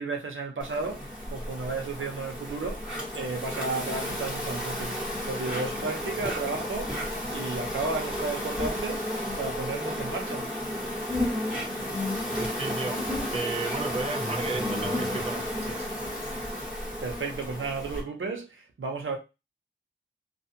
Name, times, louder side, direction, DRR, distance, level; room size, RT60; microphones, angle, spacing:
voice 1, 0.0-9.1 9.4-10.5 17.0-19.2, right 3 dB, 80° right, 0.8 m, -33 dB
Insect, 0.6-18.0, left 1 dB, 5° right, 1.4 m, -32 dB
voice 2, 12.3-15.9, right 3 dB, 30° right, 0.4 m, -34 dB
2.5 x 2.5 x 2.7 m
wide cardioid pair, 60°, 20 cm